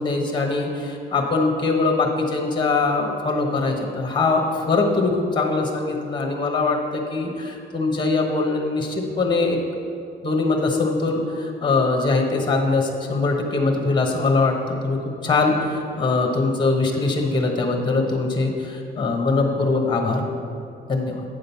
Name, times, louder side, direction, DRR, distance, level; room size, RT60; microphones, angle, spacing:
voice 1, 0.0-9.6 10.2-20.2 20.9-21.2, left 3 dB, 20° left, 2 dB, 1.1 m, -22 dB
9.1 x 3.8 x 6.9 m, 2.5 s
cardioid pair, 90°, 20 cm